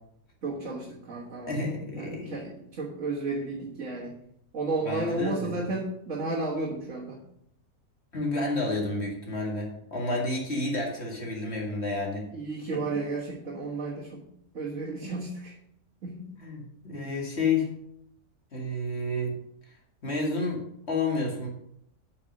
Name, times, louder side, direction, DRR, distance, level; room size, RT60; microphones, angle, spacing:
voice 1, 0.4-1.6 1.9-4.2 4.5-7.2 12.3-14.2 14.5-15.5 16.0-16.3, right 3 dB, 55° right, -4 dB, 1.9 m, -33 dB
voice 2, 1.5-2.4 4.8-5.6 8.1-12.3 12.7-12.8 15.0-15.1 16.4-17.7 18.5-19.3 20.0-20.6 20.9-21.5, left 2 dB, 45° left, -1 dB, 2.2 m, -30 dB
8.6 x 5.4 x 6.4 m, 0.75 s
omnidirectional pair, 1.6 m